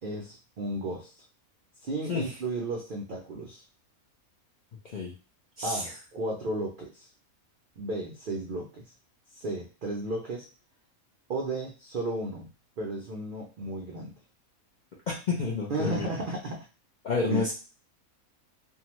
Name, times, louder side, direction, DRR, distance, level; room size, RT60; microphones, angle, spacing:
voice 1, 0.0-1.1 1.8-3.6 5.6-7.1 7.8-8.9 9.3-10.5 11.3-12.5 12.8-14.1 15.7-16.7 17.3-17.4, right 2 dB, 70° right, -1 dB, 0.5 m, -34 dB
voice 2, 5.6-5.9 15.1-16.1 17.0-17.5, left 4 dB, 65° left, -4 dB, 0.4 m, -30 dB
2.7 x 2.2 x 2.9 m, 0.33 s
omnidirectional pair, 1.5 m